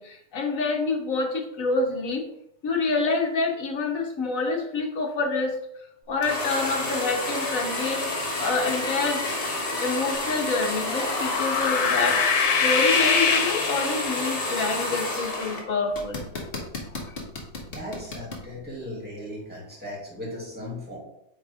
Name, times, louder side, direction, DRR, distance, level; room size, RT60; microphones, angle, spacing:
voice 1, 0.0-2.2 2.6-5.6 6.1-9.3 9.8-16.2 17.1-17.2, left 3 dB, 65° left, 2 dB, 1.5 m, -27 dB
sound 1, 6.2-15.6 15.9-18.4, left 2 dB, 40° left, 1.5 m, -30 dB
sound 2, 10.7-14.5, left 5 dB, 85° left, 1.5 m, -24 dB
voice 2, 17.7-21.0, left 1 dB, 5° right, -5 dB, 2.5 m, -37 dB
8.9 x 3.6 x 3.6 m, 0.78 s
omnidirectional pair, 1.5 m